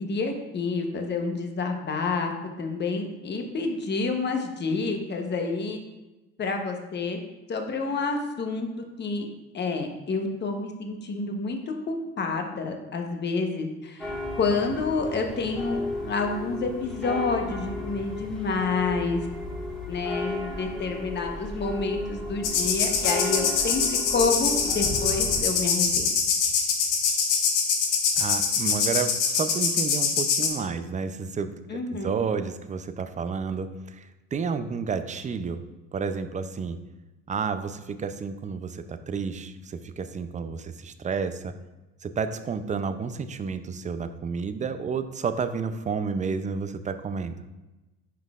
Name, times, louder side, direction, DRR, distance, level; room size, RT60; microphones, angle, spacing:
voice 1, 0.0-2.3 2.6-5.8 6.4-7.2 7.5-8.7 9.0-9.2 9.5-14.1 14.4-19.3 19.9-26.1 31.7-32.1, left 4 dB, 35° left, 4 dB, 1.0 m, -28 dB
sound 1, 14.0-25.4, left 2 dB, ahead, 1.6 m, -34 dB
sound 2, 22.4-30.5, left 6 dB, 80° left, 1.1 m, -24 dB
voice 2, 28.2-35.6 35.9-36.8 37.3-41.5 42.0-47.4, right 5 dB, 25° right, 10 dB, 0.4 m, -31 dB
10.5 x 3.9 x 2.4 m, 1.1 s
supercardioid pair, 85°, 31 cm